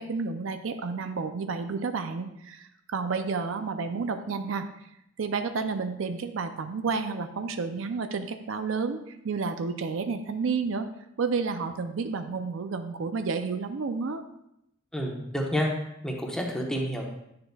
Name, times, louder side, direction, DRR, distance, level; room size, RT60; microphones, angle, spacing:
voice 1, 0.0-4.7 5.2-10.9 11.2-14.2, right 4 dB, 70° right, 8 dB, 0.5 m, -31 dB
voice 2, 14.9-15.7 16.0-17.0, equal, 5° left, -1 dB, 1.0 m, -29 dB
9.7 x 6.6 x 2.3 m, 0.80 s
head